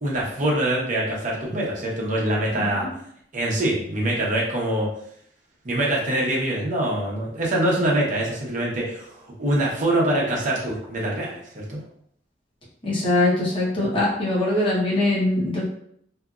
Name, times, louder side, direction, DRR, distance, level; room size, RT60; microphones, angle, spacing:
voice 1, 0.0-2.9 3.3-4.9 5.6-11.8, right 1 dB, 45° right, -4 dB, 0.9 m, -24 dB
voice 2, 2.5-2.9 12.8-15.6, left 2 dB, 30° left, -6 dB, 1.0 m, -22 dB
2.8 x 2.5 x 2.4 m, 0.68 s
head